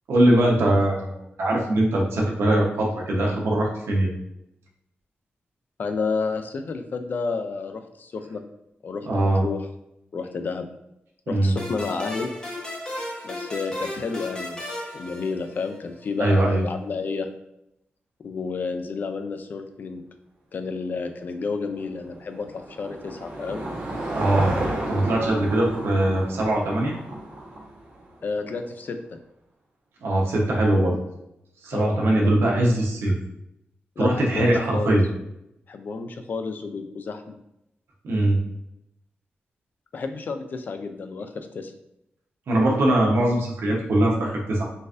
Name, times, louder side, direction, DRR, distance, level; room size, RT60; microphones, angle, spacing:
voice 1, 0.1-4.1 9.0-9.5 11.3-11.5 16.2-16.6 24.1-24.6 24.9-27.0 30.0-31.0 31.6-33.1 34.0-35.0 38.0-38.4 42.5-44.6, right 1 dB, 80° right, -2 dB, 0.9 m, -21 dB
voice 2, 5.8-8.4 8.8-9.7 10.1-10.7 11.3-12.3 13.2-14.6 14.9-17.3 18.2-20.0 20.5-23.6 28.2-29.2 31.7-32.7 34.0-35.0 35.7-37.4 39.9-41.7, left 4 dB, 50° left, 7 dB, 0.4 m, -31 dB
sound 1, 11.6-15.9, left 1 dB, 20° left, 0.8 m, -34 dB
Car passing by / Engine, 21.7-28.2, right 1 dB, 55° right, 1.2 m, -32 dB
3.9 x 2.5 x 2.5 m, 0.83 s
wide cardioid pair, 120°, 4 cm